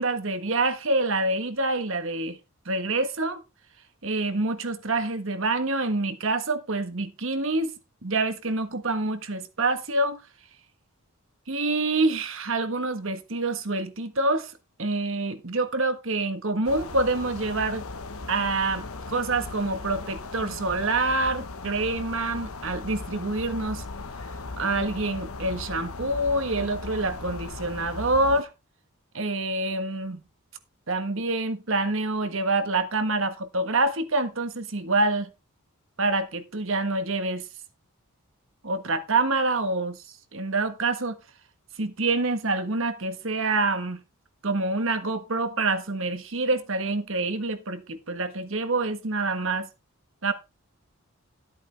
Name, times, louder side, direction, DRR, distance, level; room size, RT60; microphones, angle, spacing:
voice 1, 0.0-2.4 2.6-3.4 4.0-7.7 8.0-10.2 11.5-14.5 14.8-17.8 18.3-23.8 24.6-28.5 29.1-30.2 30.9-35.3 36.0-37.5 38.6-40.0 40.3-41.2 41.8-44.0 44.4-49.7 50.2-50.3, right 2 dB, 60° right, 1.4 m, -26 dB
sound 1, 16.6-28.4, left 3 dB, 75° left, 1.1 m, -38 dB
13.5 x 8.4 x 3.4 m
head